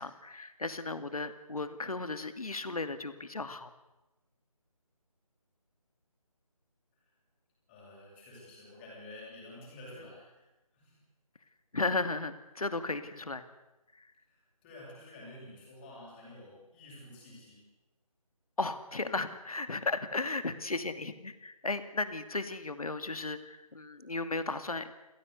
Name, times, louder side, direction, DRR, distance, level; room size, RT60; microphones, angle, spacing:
voice 1, 0.0-3.7 11.7-13.4 13.9-14.1 18.6-24.9, left 3 dB, 70° left, 10 dB, 2.4 m, -35 dB
voice 2, 7.7-10.4 10.7-11.0 14.2-17.7, left 1 dB, 15° left, -4 dB, 7.8 m, -50 dB
28.0 x 16.5 x 8.2 m, 1.0 s
figure-of-eight pair, 165°, 20 cm